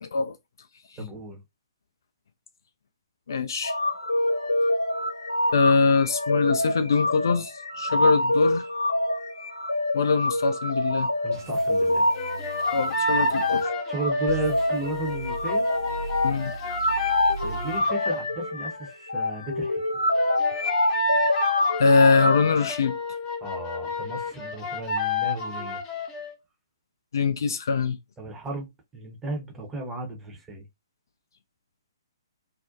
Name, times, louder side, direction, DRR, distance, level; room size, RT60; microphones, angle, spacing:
voice 1, 0.0-0.3 3.3-3.8 5.5-8.7 9.9-11.1 12.7-13.7 16.2-16.5 21.8-23.0 27.1-28.0, left 4 dB, 55° left, 0.3 m, -23 dB
voice 2, 1.0-1.4 11.2-12.1 13.9-15.7 17.4-19.8 23.4-25.8 28.2-30.7, right 3 dB, 10° right, 0.7 m, -35 dB
sound 1, 3.6-22.4, left 1 dB, 80° left, 0.8 m, -26 dB
sound 2, 11.3-13.6 14.3-17.8, right 4 dB, 55° right, 0.5 m, -38 dB
sound 3, 12.1-18.3 20.1-26.3, left 3 dB, 25° left, 0.6 m, -30 dB
2.5 x 2.1 x 2.5 m
figure-of-eight pair, 125°, 2 cm